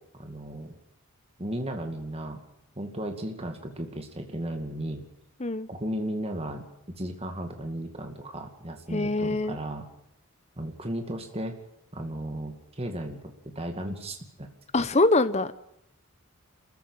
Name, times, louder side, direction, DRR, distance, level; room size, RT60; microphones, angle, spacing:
voice 1, 0.2-0.7 1.4-2.4 2.8-5.0 5.7-6.6 6.9-9.8 10.6-11.5 11.9-14.5, right 1 dB, 25° right, 4 dB, 2.3 m, -35 dB
voice 2, 8.9-9.6 14.7-15.6, left 2 dB, 30° left, 13 dB, 1.0 m, -24 dB
26.0 x 15.0 x 9.0 m, 0.80 s
head